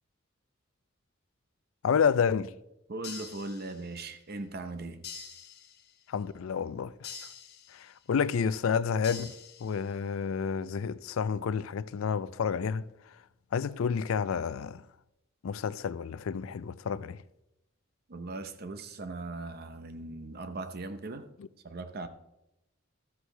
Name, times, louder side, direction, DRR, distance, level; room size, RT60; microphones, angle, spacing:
voice 1, 1.8-2.5 6.1-7.1 7.7-9.3 9.6-12.9 13.5-14.8 15.4-17.2 21.4-21.5, left 6 dB, 80° left, 0.4 m, -30 dB
voice 2, 2.9-5.0 18.1-21.3 21.6-22.1, right 2 dB, 50° right, 0.8 m, -39 dB
sound 1, 3.0-4.1 5.0-6.1 7.0-8.1 9.0-10.1, left 6 dB, 50° left, 0.8 m, -46 dB
13.5 x 7.8 x 3.3 m
head